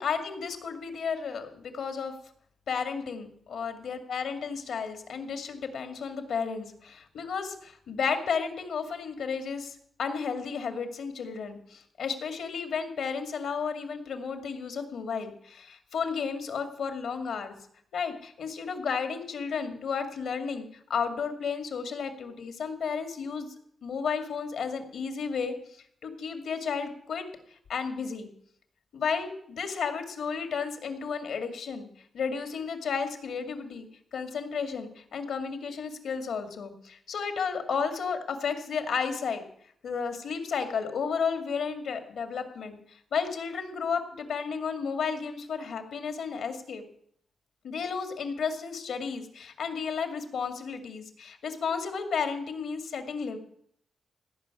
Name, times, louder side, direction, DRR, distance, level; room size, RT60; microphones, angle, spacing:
voice 1, 0.0-2.1 2.7-17.5 17.9-23.5 23.8-27.2 27.7-28.3 28.9-31.9 32.1-33.9 34.1-39.4 39.8-46.8 47.6-53.4, left 6 dB, 85° left, 7 dB, 2.3 m, -33 dB
16.5 x 6.1 x 9.8 m, 0.66 s
cardioid pair, 85°, 0 cm